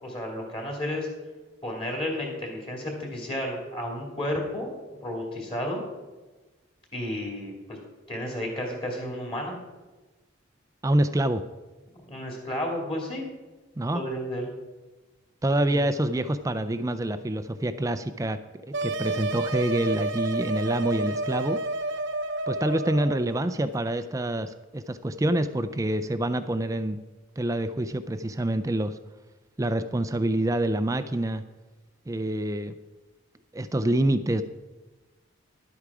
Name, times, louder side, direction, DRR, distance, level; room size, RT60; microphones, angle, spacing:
voice 1, 0.0-1.1 1.6-4.7 5.0-5.9 6.9-7.8 8.1-9.6 12.1-13.2 13.9-14.5 15.6-15.8, left 1 dB, 25° left, 0 dB, 2.3 m, -32 dB
voice 2, 10.8-11.4 13.8-14.0 15.4-18.4 18.6-21.6 22.5-27.0 27.4-29.0 29.6-31.4 32.1-32.7 33.5-34.4, right 1 dB, 15° right, 11 dB, 0.3 m, -26 dB
sound 1, 18.7-23.2, right 2 dB, 60° right, 0.7 m, -30 dB
11.5 x 8.4 x 4.8 m, 1.2 s
head